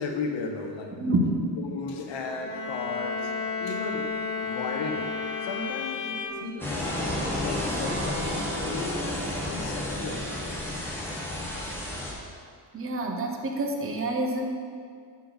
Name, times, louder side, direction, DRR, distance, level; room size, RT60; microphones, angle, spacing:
voice 1, 0.0-1.0 1.5-3.3 3.6-4.1 4.4-5.1 5.4-9.0 9.4-10.3, left 4 dB, 85° left, 3 dB, 1.0 m, -35 dB
voice 2, 0.9-1.6 12.7-14.4, right 1 dB, 30° right, 2 dB, 0.8 m, -27 dB
Bowed string instrument, 2.1-6.2, left 4 dB, 45° left, 1.4 m, -33 dB
Bowed string instrument 2, 3.6-6.6, left 6 dB, 30° left, 0.4 m, -39 dB
sound 1, 6.6-12.1, left 1 dB, 5° left, 1.2 m, -31 dB
8.3 x 5.7 x 3.9 m, 2.2 s
wide cardioid pair, 145°, 43 cm